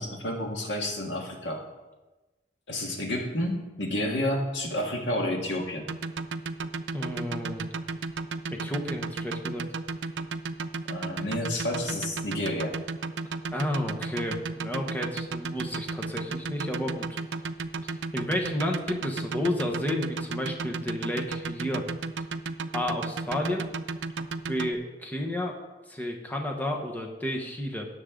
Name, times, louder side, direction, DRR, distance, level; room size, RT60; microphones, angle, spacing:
voice 1, 0.0-1.6 2.7-5.9 10.9-12.8, left 1 dB, 80° left, 1 dB, 1.8 m, -30 dB
sound 1, 5.8-24.7, right 3 dB, 85° right, 0.5 m, -33 dB
voice 2, 6.9-7.6 8.5-9.6 13.5-17.1 17.8-21.9 22.7-23.7 24.5-25.6 25.9-27.9, left 1 dB, 10° left, 1 dB, 1.1 m, -31 dB
16.5 x 6.6 x 3.8 m, 1.1 s
head